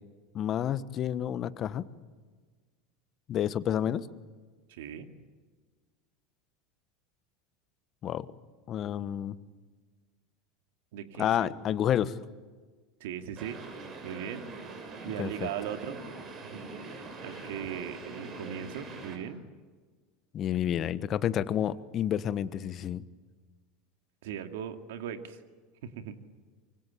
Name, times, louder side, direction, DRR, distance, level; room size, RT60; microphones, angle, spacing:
voice 1, 0.3-1.8 3.3-4.1 8.0-8.3 8.7-9.3 11.2-12.1 15.2-15.3 20.3-23.0, left 10 dB, 45° left, 15 dB, 1.3 m, -29 dB
voice 2, 4.7-5.1 10.9-11.5 13.0-13.6 14.0-14.4 14.8-16.0 16.4-19.4 24.2-25.4 25.8-26.2, right 9 dB, 75° right, 7 dB, 2.3 m, -39 dB
sound 1, 13.4-19.2, right 3 dB, 40° right, 6.6 m, -43 dB
25.5 x 24.0 x 8.7 m, 1.4 s
hypercardioid pair, 90°, 0 cm